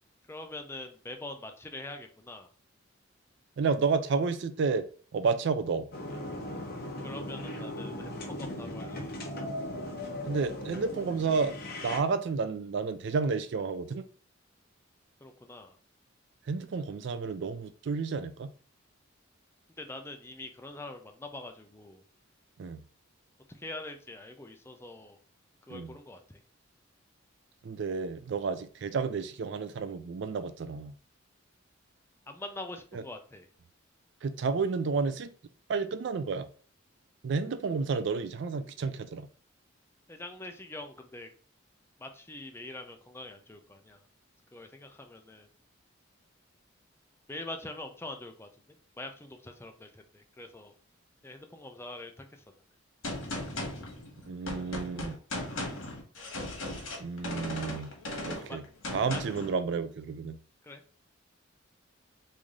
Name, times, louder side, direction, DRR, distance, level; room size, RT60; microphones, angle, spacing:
voice 1, 0.3-2.5 7.0-9.1 15.2-15.8 19.8-22.0 23.5-25.2 25.7-26.2 32.3-33.5 40.1-41.3 42.0-44.0 44.5-45.5 47.3-48.5 49.0-50.7 51.2-52.4 58.5-58.6 59.1-59.2 60.6-60.8, left 2 dB, 10° left, 0.4 m, -44 dB
voice 2, 3.6-4.9 5.1-5.9 10.2-11.5 11.8-14.0 16.5-18.5 22.6-22.8 25.7-25.9 27.6-30.9 32.9-33.0 34.2-35.3 35.7-36.5 37.2-39.3 54.3-55.2 57.0-57.9 58.2-58.6 58.9-60.4, right 4 dB, 60° right, 0.4 m, -31 dB
sound 1, 5.9-12.0, left 1 dB, 50° left, 0.9 m, -38 dB
Gunshot gunfire, 53.0-59.5, left 1 dB, 90° left, 1.2 m, -37 dB
3.2 x 2.6 x 3.6 m
head